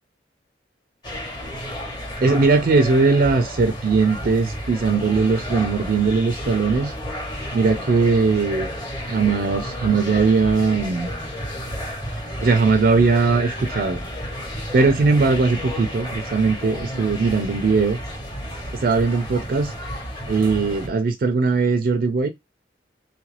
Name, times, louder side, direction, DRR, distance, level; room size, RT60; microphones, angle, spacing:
sound 1, 1.0-20.9, equal, 25° left, 0.9 m, -32 dB
voice 1, 2.2-6.9 7.5-8.7 9.1-11.1 12.4-14.0 14.7-18.0 18.7-19.7 20.3-22.3, right 4 dB, 50° right, 0.3 m, -19 dB
3.1 x 2.4 x 3.2 m
head